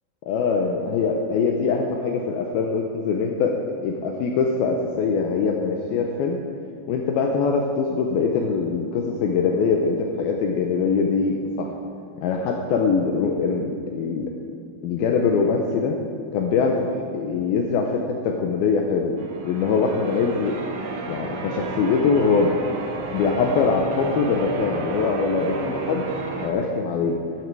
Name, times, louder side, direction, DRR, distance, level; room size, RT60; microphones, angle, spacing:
voice 1, 0.3-3.6 3.8-6.4 6.9-11.7 12.2-14.3 14.8-16.0 16.3-16.9 17.1-19.1 19.4-20.6 21.1-22.5 23.1-26.0 26.4-27.2, left 5 dB, 85° left, 1 dB, 2.1 m, -23 dB
Church bell, 19.2-26.5, right 3 dB, 75° right, 3.5 m, -32 dB
12.5 x 12.5 x 4.7 m, 2.4 s
omnidirectional pair, 5.5 m